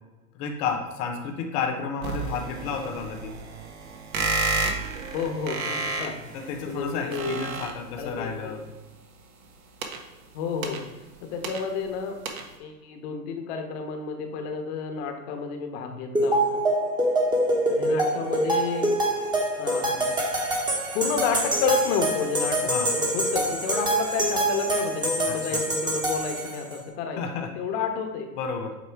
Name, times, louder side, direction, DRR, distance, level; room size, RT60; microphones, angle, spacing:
voice 1, 0.3-3.4 6.3-8.6 22.7-22.9 25.3-25.6 27.2-27.5 28.3-28.8, left 5 dB, 15° left, 3 dB, 0.3 m, -31 dB
sound 1, 2.0-8.2 9.4-12.0 12.2-12.5, right 3 dB, 65° right, 1.3 m, -31 dB
voice 2, 5.1-7.4 8.0-8.6 10.3-10.8 11.2-16.6 17.7-19.0 19.2-19.3 19.6-20.1 20.9-27.2 27.5-28.3, left 5 dB, 45° left, 4 dB, 1.2 m, -31 dB
sound 2, 16.1-26.8, right 1 dB, 10° right, 1.1 m, -25 dB
8.4 x 3.0 x 4.6 m, 1.2 s
hypercardioid pair, 125°, 47 cm